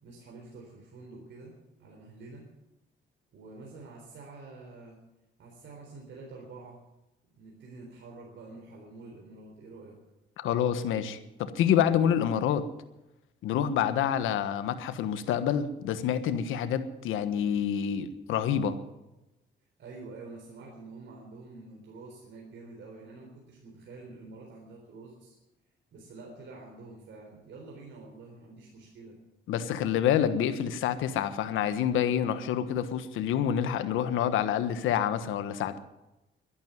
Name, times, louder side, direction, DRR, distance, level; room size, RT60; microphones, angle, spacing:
voice 1, 0.0-2.5 3.3-5.0 5.4-6.8 7.4-10.0 19.8-25.4 25.9-29.2, right 3 dB, 70° right, 0 dB, 3.9 m, -47 dB
voice 2, 10.4-12.6 13.4-18.8 29.5-35.8, left 9 dB, 90° left, 10 dB, 1.3 m, -27 dB
12.5 x 11.0 x 9.4 m, 0.97 s
cardioid pair, 90°, 20 cm